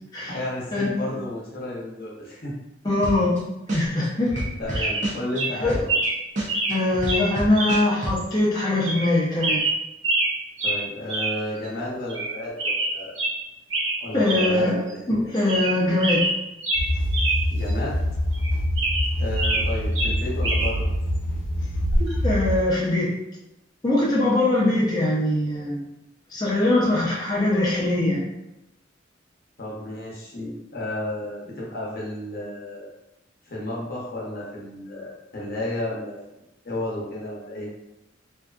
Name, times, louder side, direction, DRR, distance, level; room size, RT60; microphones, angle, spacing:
voice 1, 0.3-2.5 3.0-3.3 4.6-5.9 10.6-13.1 14.0-15.0 17.5-18.0 19.2-20.9 29.6-32.9 33.5-36.2 36.6-37.7, left 1 dB, 55° left, -4 dB, 0.8 m, -32 dB
voice 2, 2.8-3.4 3.7-4.3 4.7-4.9 5.6-5.8 6.7-9.6 14.1-16.3 22.2-23.1 23.8-25.8 26.3-28.2, left 2 dB, 20° left, -7 dB, 0.6 m, -22 dB
sound 1, 3.0-3.4 3.7-6.1 6.4-8.2, right 1 dB, 45° right, 0.7 m, -28 dB
sound 2, 4.3-4.5 4.7-5.1 5.3-5.5 5.9-6.2 6.5-6.8 7.1-7.2 7.6-7.8 8.2-8.3 8.8-9.1 9.4-10.3 10.6-10.8 11.1-11.3 11.6-11.7 12.1-12.3 12.6-13.4 13.7-14.0 14.2-14.5 14.9-15.0 15.4-15.7 16.0-17.4 17.7-17.8 18.3-19.7 19.9-20.7 21.9-22.1, right 2 dB, 80° right, 0.7 m, -25 dB
sound 3, 16.7-22.6, equal, 85° left, 0.5 m, -25 dB
2.5 x 2.4 x 2.3 m, 0.91 s
head